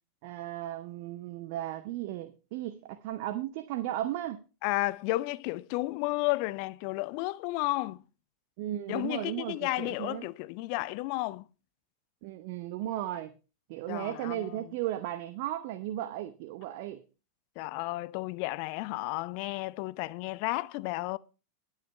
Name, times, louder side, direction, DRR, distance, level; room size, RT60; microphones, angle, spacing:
voice 1, 0.2-4.4 8.6-10.3 12.2-13.3 13.7-17.0, right 13 dB, 50° right, 0.8 m, -35 dB
voice 2, 4.6-8.0 8.9-11.4 13.9-14.7 17.6-21.2, left 20 dB, 45° left, 0.5 m, -32 dB
20.5 x 8.2 x 3.2 m
figure-of-eight pair, 90°, 0 cm